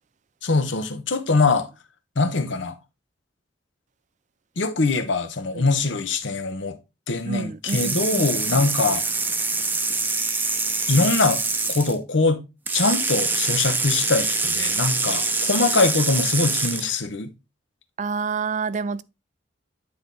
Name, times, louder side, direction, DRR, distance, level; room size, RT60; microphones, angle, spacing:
voice 1, 0.4-1.7 2.2-2.8 4.6-6.8 7.1-9.0 10.9-11.4 11.7-12.4 12.7-17.3, left 3 dB, 75° left, 1.0 m, -22 dB
voice 2, 7.3-8.7 18.0-19.0, right 5 dB, 40° right, 0.4 m, -29 dB
sound 1, 7.7-11.9 12.7-17.0, right 3 dB, 10° right, 0.7 m, -25 dB
9.6 x 4.1 x 3.4 m
head